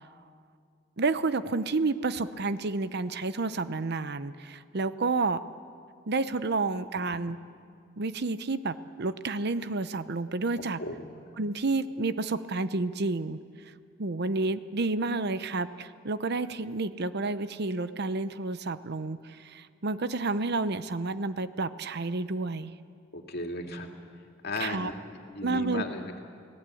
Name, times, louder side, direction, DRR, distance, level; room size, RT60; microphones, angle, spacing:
voice 1, 1.0-5.4 6.1-7.4 8.0-10.8 11.4-13.4 14.0-22.7 24.6-24.9 25.4-25.8, right 3 dB, 55° right, 13 dB, 0.8 m, -30 dB
voice 2, 6.8-7.2 10.8-11.1 23.1-23.9 24.4-26.2, left 2 dB, 55° left, 3 dB, 2.5 m, -36 dB
29.0 x 17.5 x 8.6 m, 2.3 s
head